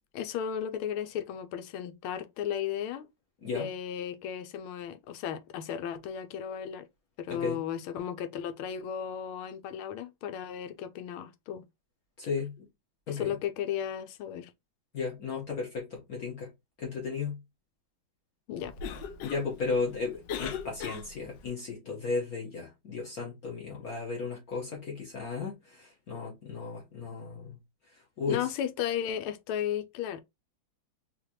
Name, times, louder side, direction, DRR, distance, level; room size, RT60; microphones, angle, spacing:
voice 1, 0.1-3.1 3.5-6.9 7.2-11.6 13.1-14.5 18.5-18.9 28.3-30.2, left 9 dB, 90° left, 1.5 m, -35 dB
voice 2, 12.2-12.5 13.1-13.3 14.9-16.5 16.8-17.4 19.2-27.5 28.2-28.4, left 4 dB, 50° left, 1.6 m, -34 dB
Cough, 18.6-21.5, left 7 dB, 75° left, 1.1 m, -40 dB
4.0 x 2.9 x 2.9 m
omnidirectional pair, 2.3 m